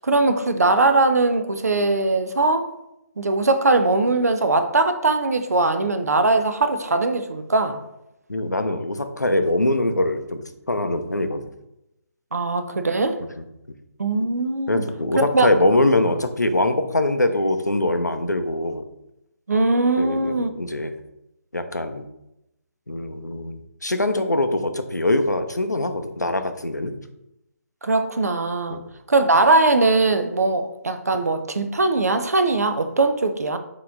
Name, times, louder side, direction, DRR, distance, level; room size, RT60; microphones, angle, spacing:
voice 1, 0.0-2.6 3.2-7.8 12.3-13.2 14.0-14.8 15.2-15.5 19.5-20.5 27.8-28.8 29.1-33.6, right 3 dB, 65° right, 8 dB, 0.5 m, -20 dB
voice 2, 8.3-11.4 14.7-18.8 20.0-20.9 21.5-22.0 22.9-26.9 28.7-28.8, left 1 dB, 90° left, 7 dB, 0.6 m, -23 dB
4.8 x 3.0 x 3.7 m, 0.87 s
figure-of-eight pair, 145°, 9 cm